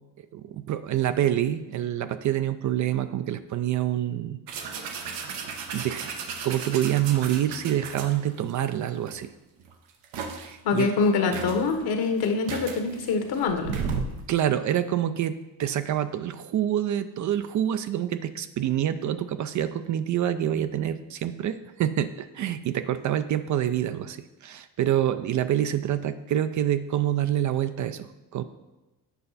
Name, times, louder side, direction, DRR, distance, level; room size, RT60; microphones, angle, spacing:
voice 1, 0.3-4.4 4.7-5.3 5.7-6.1 6.4-9.3 10.4-10.9 14.3-28.4, right 11 dB, 45° right, 11 dB, 0.4 m, -27 dB
sound 1, 4.5-8.5 9.1-9.2 9.6-10.5 11.0-11.1 11.3-14.2, right 5 dB, 85° right, 1.0 m, -35 dB
voice 2, 10.6-13.7, left 4 dB, 60° left, 4 dB, 1.3 m, -25 dB
8.0 x 5.4 x 4.0 m, 1.0 s
supercardioid pair, 90°, 42 cm